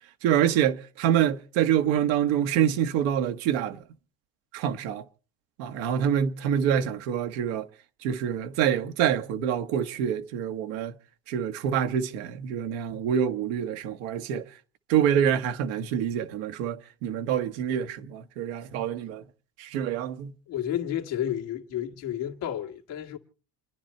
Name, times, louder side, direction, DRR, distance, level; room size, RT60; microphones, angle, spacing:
voice 1, 0.2-3.8 4.5-5.0 5.6-7.7 8.0-10.9 11.3-14.4 14.9-19.2 19.6-20.3, right 9 dB, 85° right, 1.2 m, -26 dB
voice 2, 20.5-23.2, left 11 dB, 80° left, 1.9 m, -31 dB
29.0 x 10.5 x 4.3 m
supercardioid pair, 75°, 42 cm